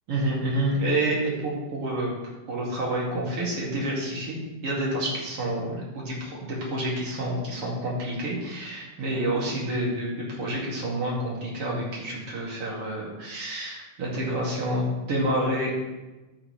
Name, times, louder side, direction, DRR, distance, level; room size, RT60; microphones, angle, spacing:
voice 1, 0.1-2.1 2.5-15.7, right 1 dB, 45° right, -4 dB, 2.9 m, -28 dB
14.0 x 6.3 x 3.3 m, 1.1 s
omnidirectional pair, 3.9 m